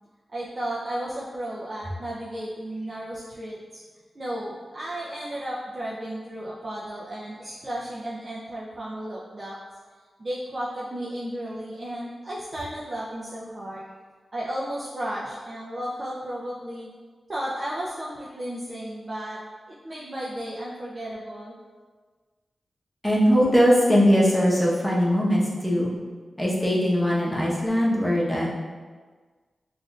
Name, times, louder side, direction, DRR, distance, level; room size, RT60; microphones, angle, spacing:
voice 1, 0.3-3.8 4.1-9.6 10.2-13.9 14.3-16.9 17.3-19.4 19.8-21.5, right 1 dB, 45° right, -6 dB, 0.6 m, -34 dB
voice 2, 23.0-25.9 26.4-28.5, equal, 15° left, -5 dB, 1.1 m, -20 dB
5.9 x 2.5 x 2.4 m, 1.4 s
cardioid pair, 65°, 0 cm